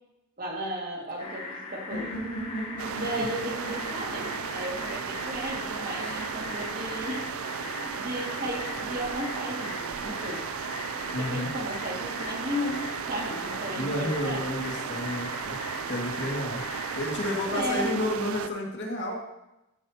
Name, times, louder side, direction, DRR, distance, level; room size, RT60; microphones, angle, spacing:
voice 1, 0.4-2.1 3.0-7.3 7.6-10.4 11.2-14.4 17.5-17.9, equal, 45° right, -1 dB, 2.0 m, -35 dB
sound 1, 1.2-17.6, left 3 dB, 25° left, 1.2 m, -39 dB
sound 2, 1.9-5.8, right 1 dB, 75° left, 2.9 m, -38 dB
sound 3, 2.8-18.5, right 8 dB, 80° right, 0.4 m, -35 dB
voice 2, 11.1-11.5 13.7-15.6 15.9-16.6 17.0-19.2, left 1 dB, 55° left, -1 dB, 2.0 m, -31 dB
14.0 x 7.9 x 2.9 m, 0.91 s
head